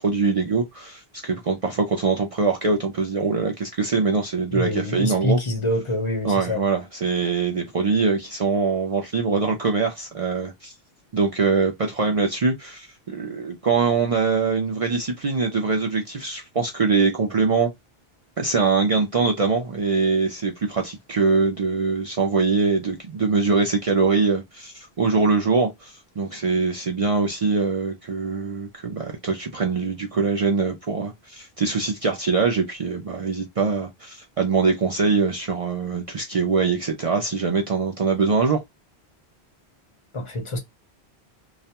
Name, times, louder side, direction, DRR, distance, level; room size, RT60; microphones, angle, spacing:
voice 1, 0.0-5.4 6.2-10.7 11.1-17.7 18.4-38.6, right 4 dB, 50° right, 0.4 m, -23 dB
voice 2, 4.5-6.7 40.1-40.6, left 1 dB, 35° left, 0.7 m, -26 dB
2.4 x 2.1 x 2.7 m
omnidirectional pair, 1.1 m